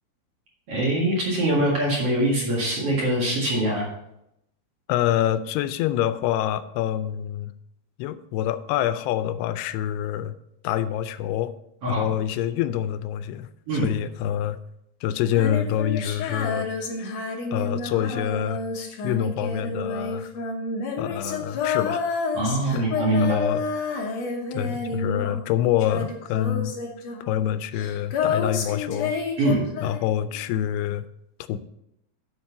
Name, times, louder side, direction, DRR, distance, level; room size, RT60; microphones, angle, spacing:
voice 1, 0.7-3.9 11.8-12.1 13.7-13.9 22.3-23.4 29.4-29.6, right 1 dB, 45° right, -3 dB, 2.3 m, -23 dB
voice 2, 4.9-7.5 8.0-10.3 10.6-11.5 11.9-13.5 13.8-14.6 15.0-16.7 17.0-17.1 17.5-18.6 19.0-20.3 21.0-22.0 22.7-22.9 23.2-23.6 24.5-26.7 27.3-29.2 29.8-31.1 31.5-31.6, left 11 dB, 85° left, 13 dB, 2.6 m, -26 dB
Female singing, 15.2-25.5 25.8-30.3, left 4 dB, 65° left, 1.7 m, -29 dB
7.7 x 6.5 x 5.7 m, 0.81 s
omnidirectional pair, 4.6 m